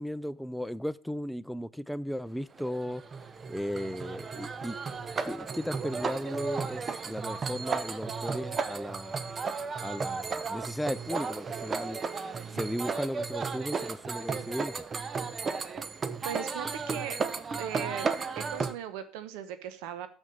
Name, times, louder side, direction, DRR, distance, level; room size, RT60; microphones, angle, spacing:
voice 1, 0.0-3.0 3.5-4.8 5.2-9.1 9.8-12.0 12.5-14.8, equal, ahead, 0.5 m, -36 dB
sound 1, 2.6-18.7, right 5 dB, 35° right, 0.8 m, -34 dB
voice 2, 16.2-17.2 17.6-18.1 18.4-20.1, right 9 dB, 75° right, 1.0 m, -38 dB
6.5 x 6.2 x 7.4 m
hypercardioid pair, 70°, 0 cm